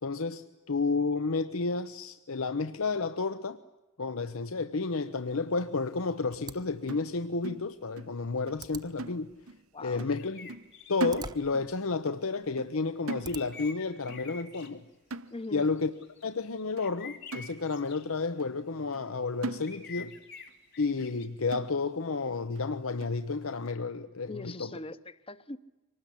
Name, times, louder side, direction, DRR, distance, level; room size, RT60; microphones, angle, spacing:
voice 1, 0.0-3.6 4.0-9.3 9.8-10.5 10.9-14.8 15.5-15.9 16.2-20.2 20.8-24.7, left 4 dB, 80° left, 0.8 m, -31 dB
sound 1, 6.3-13.8, right 4 dB, 20° right, 0.8 m, -49 dB
sound 2, 6.9-8.2 8.5-8.7 9.0-9.7 10.0-10.2 10.5-11.8 12.1-12.3 12.6-13.8 14.1-14.3 14.6-14.8 15.1-15.7 16.2-16.3 16.8-16.9 17.3-18.0 18.4-18.5 18.9-19.1 19.4-20.2 20.5-20.6 21.0-21.1 21.5-22.1 22.6-22.7 23.0-23.2, right 2 dB, 80° right, 0.9 m, -40 dB
voice 2, 9.7-10.1 15.3-15.7 24.3-25.6, left 2 dB, 25° left, 0.8 m, -41 dB
sound 3, 10.1-11.3 13.1-14.7 15.4-18.1 19.6-21.3, left 6 dB, 50° left, 2.6 m, -47 dB
25.0 x 19.5 x 10.0 m
head